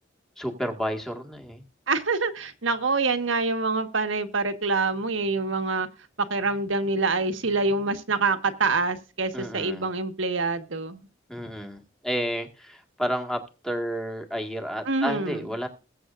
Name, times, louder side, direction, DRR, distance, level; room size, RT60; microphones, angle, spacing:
voice 1, 0.4-1.6 9.3-9.9 11.3-15.7, equal, 5° left, 1.8 m, -31 dB
voice 2, 1.9-5.9 6.3-11.1 14.9-15.4, right 3 dB, 85° right, 1.5 m, -26 dB
20.5 x 7.9 x 2.5 m
head